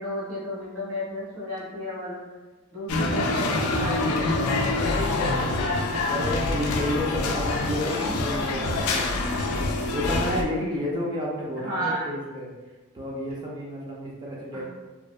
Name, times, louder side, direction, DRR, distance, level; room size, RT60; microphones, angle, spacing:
voice 1, 0.0-2.2 2.7-5.1 11.6-12.0 14.5-14.6, equal, 70° right, -9 dB, 1.3 m, -33 dB
sound 1, 2.9-10.4, left 2 dB, 75° left, 0.3 m, -25 dB
voice 2, 5.4-12.5 12.9-14.6, equal, 20° right, -4 dB, 0.3 m, -31 dB
2.6 x 2.1 x 2.3 m, 1.2 s
head